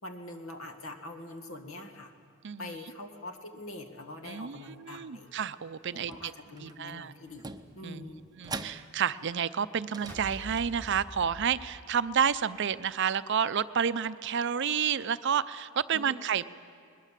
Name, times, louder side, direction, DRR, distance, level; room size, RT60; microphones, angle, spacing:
voice 1, 0.0-2.1 2.6-5.3 5.9-8.2 15.9-16.2, left 1 dB, 70° left, 6 dB, 1.9 m, -44 dB
voice 2, 4.2-6.1 6.6-7.1 7.8-8.1 8.4-16.4, right 7 dB, 55° right, 14 dB, 0.5 m, -30 dB
sound 1, 5.9-6.8 7.3-9.3 9.8-11.2, right 3 dB, 20° right, 0.6 m, -44 dB
sound 2, 10.1-12.4, equal, 10° left, 1.4 m, -45 dB
21.5 x 20.5 x 7.4 m, 2.3 s
head